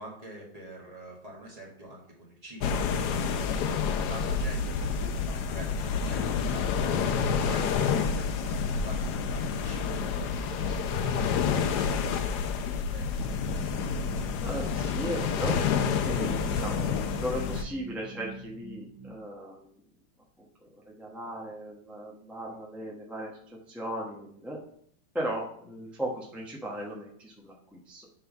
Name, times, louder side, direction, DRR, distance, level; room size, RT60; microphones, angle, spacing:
voice 1, 0.0-2.8 3.2-3.7 4.1-7.0 7.4-11.3 11.7-12.6 12.9-13.1, right 1 dB, 20° right, -3 dB, 1.5 m, -46 dB
sound 1, 2.6-17.6, left 6 dB, 70° left, 1.0 m, -29 dB
sound 2, 13.1-19.1, right 3 dB, 50° right, 1.5 m, -45 dB
voice 2, 14.4-15.6 16.0-19.8 20.4-24.6 25.1-28.0, equal, ahead, -4 dB, 0.7 m, -37 dB
7.9 x 3.5 x 5.2 m, 0.63 s
omnidirectional pair, 2.2 m